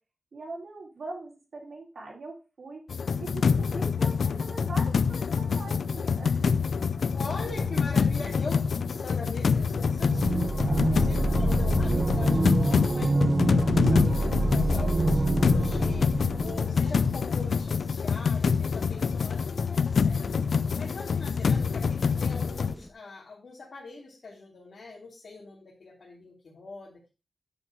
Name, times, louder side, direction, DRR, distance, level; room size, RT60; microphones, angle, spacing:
voice 1, 0.3-2.8 3.2-6.5 10.6-11.1, right 2 dB, 70° right, -2 dB, 3.3 m, -42 dB
sound 1, 2.9-22.7, left 5 dB, 85° left, 0.4 m, -26 dB
voice 2, 7.1-27.1, left 3 dB, 65° left, -4 dB, 2.8 m, -43 dB
sound 2, 7.4-9.0 9.6-17.6, right 2 dB, 45° right, 0.7 m, -27 dB
sound 3, 12.1-22.9, left 1 dB, 10° left, 0.9 m, -48 dB
9.8 x 5.4 x 4.6 m, 0.31 s
wide cardioid pair, 140°, 0 cm